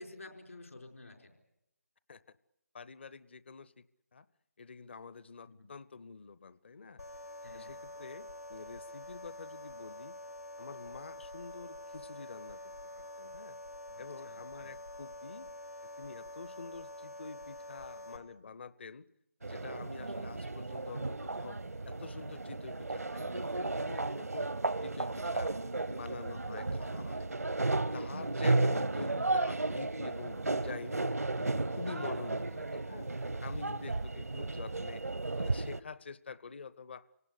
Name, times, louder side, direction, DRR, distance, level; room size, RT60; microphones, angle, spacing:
voice 1, 0.0-1.3 5.5-5.7 7.4-7.8 13.9-14.7 32.1-32.2, left 2 dB, 70° left, 4 dB, 4.8 m, -50 dB
voice 2, 2.7-3.7 4.1-4.3 4.6-7.0 7.5-10.2 10.6-13.6 14.0-15.5 15.8-19.1 19.4-21.6 21.9-24.5 24.8-25.5 25.8-27.3 27.6-31.0 31.3-35.0 35.3-37.1, left 4 dB, 45° left, 18 dB, 0.8 m, -47 dB
sound 1, 7.0-18.2, left 1 dB, 85° left, 4.9 m, -47 dB
sound 2, 19.4-35.8, right 2 dB, 80° right, 0.8 m, -34 dB
27.0 x 18.0 x 8.4 m, 0.85 s
figure-of-eight pair, 150°, 8 cm